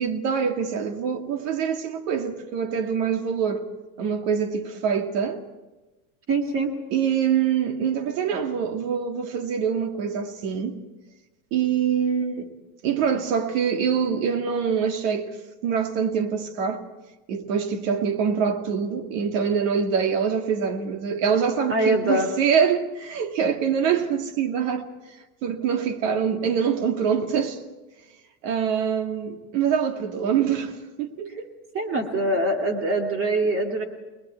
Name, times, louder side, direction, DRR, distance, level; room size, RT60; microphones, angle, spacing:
voice 1, 0.0-3.6 4.0-5.4 6.9-10.8 11.5-12.5 12.8-15.3 15.6-16.8 17.3-24.9 25.4-27.6 28.4-30.7 31.0-31.5, right 7 dB, 60° right, 2.4 m, -24 dB
voice 2, 6.3-6.7 21.7-22.3 31.7-33.8, right 2 dB, 30° right, 2.4 m, -23 dB
29.5 x 20.5 x 4.6 m
supercardioid pair, 140°, 43 cm